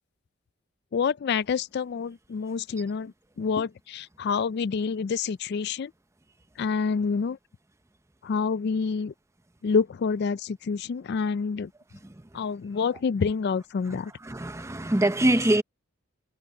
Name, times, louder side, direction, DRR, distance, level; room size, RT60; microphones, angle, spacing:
voice 1, 0.9-3.1 3.4-5.9 6.6-7.4 8.2-9.1 9.6-11.7 12.3-14.1, left 5 dB, 55° left, 0.3 m, -27 dB
voice 2, 14.2-15.6, right 1 dB, 15° right, 0.7 m, -23 dB
head